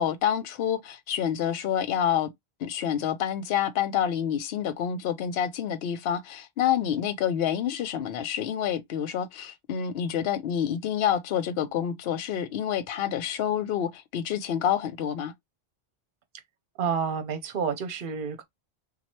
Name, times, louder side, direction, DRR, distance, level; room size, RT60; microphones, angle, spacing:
voice 1, 0.0-2.3 2.6-15.3, left 9 dB, 75° left, 0.8 m, -28 dB
voice 2, 16.8-18.4, right 6 dB, 60° right, 0.9 m, -29 dB
3.1 x 2.3 x 4.2 m
omnidirectional pair, 1.0 m